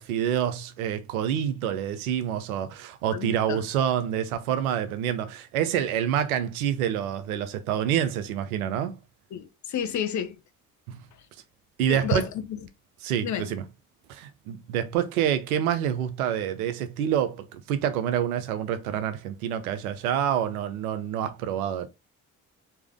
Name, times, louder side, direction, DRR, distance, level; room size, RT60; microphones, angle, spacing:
voice 1, 0.0-9.0 10.9-11.0 11.8-12.3 13.0-13.6 14.1-21.9, right 9 dB, 70° right, 0.7 m, -27 dB
voice 2, 3.1-3.6 9.3-10.3 11.9-12.3 13.2-13.5, left 9 dB, 40° left, 0.8 m, -30 dB
4.8 x 2.9 x 3.5 m
figure-of-eight pair, 45°, 44 cm